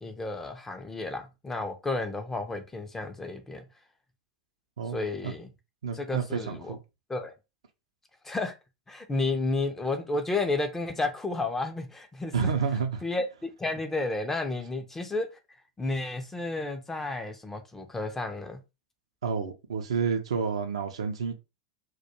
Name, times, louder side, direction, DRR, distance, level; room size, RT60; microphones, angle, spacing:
voice 1, 0.0-3.6 4.9-5.5 5.9-6.8 7.1-7.3 8.2-8.5 8.9-12.5 13.0-15.3 15.8-18.6, left 2 dB, 10° left, 0.4 m, -32 dB
voice 2, 5.8-6.8 12.3-13.0 19.2-21.3, right 6 dB, 70° right, 0.4 m, -29 dB
2.2 x 2.2 x 2.8 m
figure-of-eight pair, 90°, 3 cm